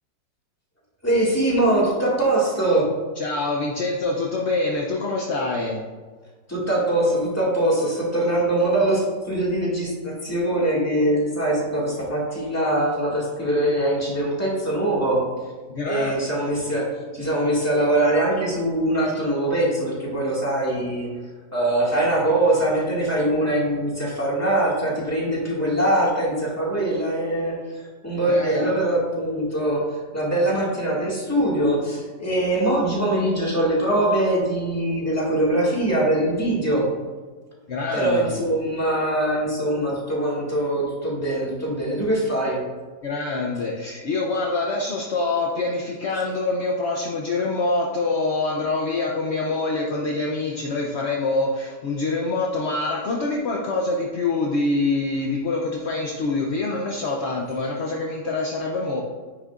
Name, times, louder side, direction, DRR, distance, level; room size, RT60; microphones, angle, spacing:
voice 1, 1.0-2.9 6.5-15.2 15.9-16.8 17.2-21.1 21.5-29.8 30.1-36.8 37.9-42.6, right 1 dB, 10° left, -5 dB, 1.8 m, -22 dB
voice 2, 3.2-5.8 15.7-16.1 28.3-28.7 37.7-38.4 43.0-59.0, left 3 dB, 60° left, -1 dB, 0.7 m, -25 dB
9.3 x 6.5 x 2.5 m, 1.5 s
omnidirectional pair, 2.0 m